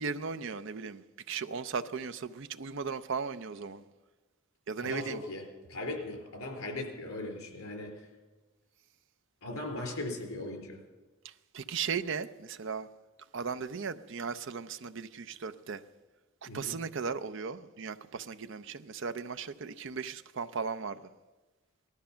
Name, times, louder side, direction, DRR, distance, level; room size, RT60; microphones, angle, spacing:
voice 1, 0.0-3.8 4.7-5.2 11.2-12.9 13.3-15.8 16.4-21.1, right 5 dB, 60° right, 0.6 m, -37 dB
voice 2, 4.8-8.1 9.4-10.8 16.5-16.8, left 2 dB, 85° left, 3.7 m, -38 dB
19.0 x 12.5 x 5.7 m
head